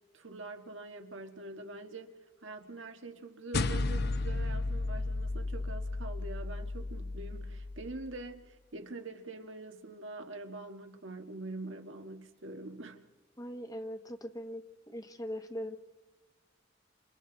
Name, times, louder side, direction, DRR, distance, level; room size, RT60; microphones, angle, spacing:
voice 1, 0.1-13.0, right 2 dB, 90° right, 1.6 m, -44 dB
sound 1, 3.5-8.2, left 2 dB, 60° left, 0.7 m, -34 dB
voice 2, 13.4-15.8, equal, 20° left, 1.2 m, -41 dB
28.0 x 25.0 x 4.0 m
head